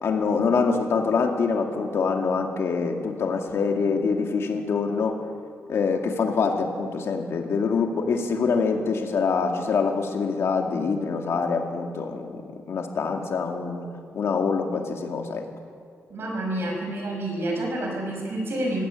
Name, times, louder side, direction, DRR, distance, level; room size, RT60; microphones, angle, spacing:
voice 1, 0.0-5.2 5.7-12.4 12.7-13.9 14.1-15.5, left 5 dB, 60° left, 3 dB, 2.3 m, -25 dB
voice 2, 16.1-18.8, right 1 dB, 50° right, 1 dB, 5.7 m, -28 dB
19.5 x 16.0 x 9.0 m, 2.4 s
wide cardioid pair, 170°, 5 cm